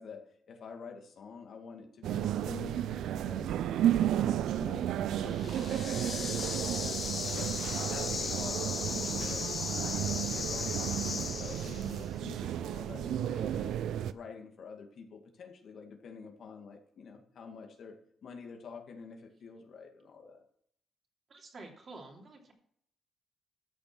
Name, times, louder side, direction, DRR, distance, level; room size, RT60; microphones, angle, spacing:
voice 1, 0.0-3.6 4.1-9.5 9.8-13.7 14.1-20.4, left 5 dB, 60° left, 3 dB, 2.1 m, -48 dB
sound 1, 2.0-14.1, right 11 dB, 90° right, 0.5 m, -33 dB
sound 2, 5.3-12.0, left 6 dB, 45° left, 0.8 m, -37 dB
voice 2, 21.3-22.5, right 3 dB, 40° right, 0 dB, 3.0 m, -49 dB
13.5 x 7.2 x 6.1 m, 0.67 s
cardioid pair, 120°, 0 cm